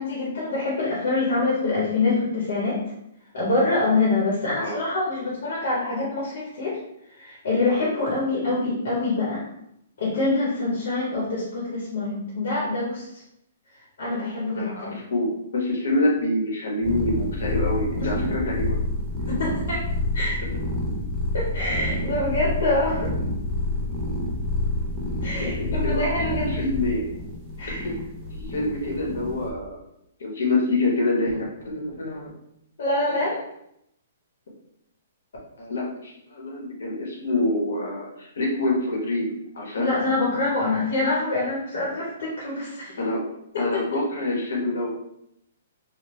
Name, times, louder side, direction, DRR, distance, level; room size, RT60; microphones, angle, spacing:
voice 1, 0.0-2.8 3.3-6.8 7.1-9.4 10.0-13.2 14.0-14.9 18.0-18.1 19.4-19.8 20.1-20.4 21.3-23.1 25.2-26.5 27.6-27.9 32.8-33.4 39.8-43.0 43.5-43.8, left 2 dB, 60° left, -5 dB, 0.9 m, -25 dB
voice 2, 14.5-18.8 19.3-19.4 25.3-26.1 26.5-27.1 27.8-27.9 28.3-29.8 30.2-32.3 35.6-39.9 43.0-43.2 43.6-44.9, left 2 dB, 85° left, -2 dB, 1.1 m, -26 dB
sound 1, 16.8-29.5, left 1 dB, 10° right, 0.4 m, -28 dB
3.2 x 2.1 x 3.1 m, 0.78 s
hypercardioid pair, 170°, 0 cm